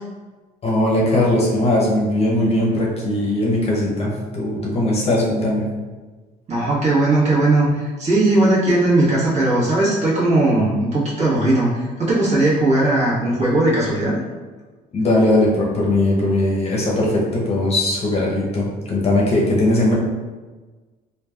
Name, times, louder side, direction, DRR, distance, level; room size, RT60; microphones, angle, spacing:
voice 1, 0.6-5.7 14.9-19.9, left 1 dB, 35° left, -3 dB, 0.7 m, -19 dB
voice 2, 6.5-14.2, right 2 dB, 40° right, -7 dB, 1.1 m, -18 dB
3.2 x 2.2 x 2.3 m, 1.3 s
cardioid pair, 110°, 17 cm